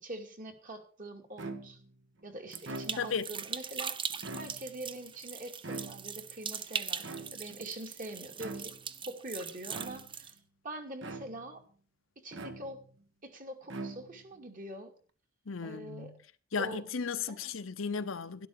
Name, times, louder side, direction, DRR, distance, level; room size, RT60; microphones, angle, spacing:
voice 1, 0.0-1.8 2.2-4.0 4.4-8.7 9.1-10.4 10.6-11.6 12.2-12.8 13.2-14.9 15.6-16.1 16.6-16.8 17.3-17.4, right 1 dB, 45° right, 2.4 m, -44 dB
sound 1, 1.4-1.9 2.5-3.3 4.1-4.9 5.6-6.3 7.0-7.7 8.4-8.9 9.7-10.3 11.0-11.6 12.3-13.0 13.6-14.4, right 2 dB, 65° right, 1.5 m, -43 dB
sound 2, 2.5-10.3, right 6 dB, 25° right, 0.6 m, -40 dB
voice 2, 3.0-3.3 15.5-16.2 16.5-18.5, left 5 dB, 80° left, 0.9 m, -35 dB
12.5 x 11.5 x 4.8 m
head